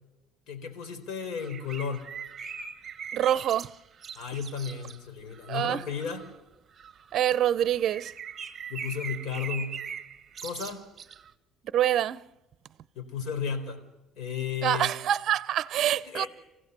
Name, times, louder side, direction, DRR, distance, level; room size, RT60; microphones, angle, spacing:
voice 1, 0.5-2.1 4.1-6.2 8.7-9.8 10.4-10.8 12.9-13.8 14.2-14.9 16.1-16.3, left 6 dB, 70° left, 4.3 m, -34 dB
sound 1, 1.4-5.0 5.3-5.6 5.9-6.4 6.7-7.1 7.5-11.3, right 7 dB, 35° right, 1.3 m, -41 dB
voice 2, 3.1-3.7 5.5-5.8 7.1-8.1 11.7-12.2 14.6-16.2, right 11 dB, 55° right, 0.7 m, -25 dB
28.0 x 16.0 x 6.9 m
cardioid pair, 115°, 0 cm